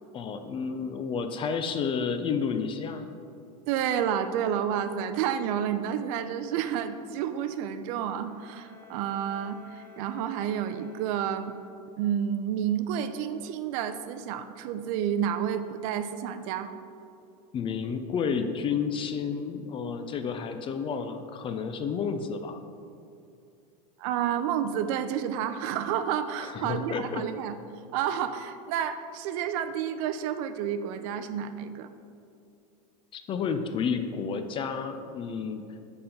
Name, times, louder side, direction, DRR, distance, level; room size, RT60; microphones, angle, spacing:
voice 1, 0.1-3.1 17.5-22.6 26.4-27.2 33.1-35.6, left 6 dB, 25° left, 8 dB, 0.4 m, -31 dB
voice 2, 3.7-11.5 12.0-16.7 24.0-27.6 27.9-31.9, right 9 dB, 60° right, 9 dB, 0.5 m, -30 dB
Bowed string instrument, 7.9-12.0, left 7 dB, 85° left, 1.6 m, -53 dB
5.4 x 4.3 x 5.2 m, 2.5 s
supercardioid pair, 115°, 21 cm